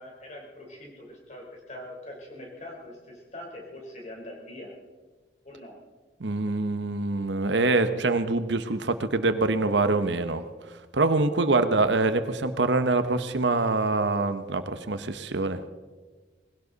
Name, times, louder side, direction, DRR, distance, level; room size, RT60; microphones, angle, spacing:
voice 1, 0.0-4.7 5.4-5.8, left 1 dB, 40° left, -1 dB, 3.9 m, -43 dB
voice 2, 6.2-10.4 10.9-15.6, right 3 dB, 75° right, 10 dB, 0.9 m, -25 dB
20.0 x 17.0 x 4.0 m, 1.3 s
head